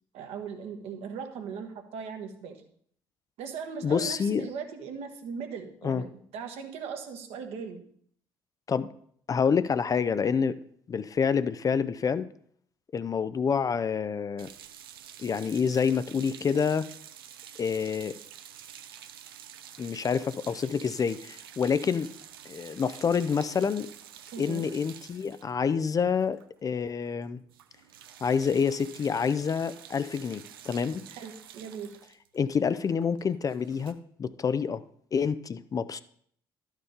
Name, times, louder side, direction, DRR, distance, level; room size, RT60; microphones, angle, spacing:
voice 1, 0.1-2.6 3.4-7.8 24.3-24.7 31.1-32.0, right 6 dB, 60° right, 5 dB, 1.2 m, -39 dB
voice 2, 3.8-4.5 5.8-6.0 8.7-8.9 9.3-10.6 10.9-12.3 12.9-14.5 15.2-16.9 17.6-18.2 19.8-22.1 22.5-23.9 24.4-27.4 28.2-31.0 32.3-34.8 35.1-36.0, left 6 dB, 30° left, 14 dB, 0.4 m, -27 dB
sound 1, 14.4-26.8 27.0-27.2 27.5-33.9, right 10 dB, 75° right, 0.5 m, -49 dB
12.0 x 4.6 x 5.0 m, 0.63 s
figure-of-eight pair, 50°, 12 cm